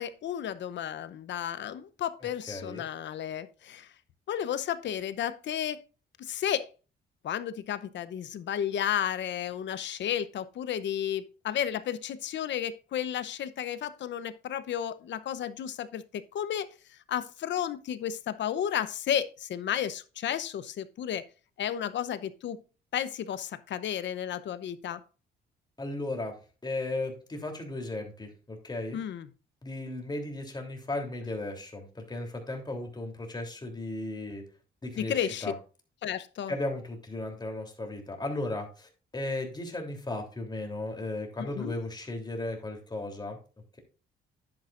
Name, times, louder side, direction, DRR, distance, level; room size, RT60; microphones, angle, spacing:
voice 1, 0.0-3.9 4.3-5.8 6.2-6.7 7.2-16.7 17.1-21.2 21.6-22.6 22.9-25.0 28.9-29.3 35.0-35.5 36.0-36.5 41.4-41.7, left 10 dB, 65° left, 0.8 m, -32 dB
voice 2, 2.2-2.8 25.8-26.4 26.6-29.0 29.6-34.4 34.8-35.5 36.5-43.4, left 2 dB, 20° left, 3.2 m, -35 dB
10.5 x 8.8 x 2.5 m
cardioid pair, 90°, 20 cm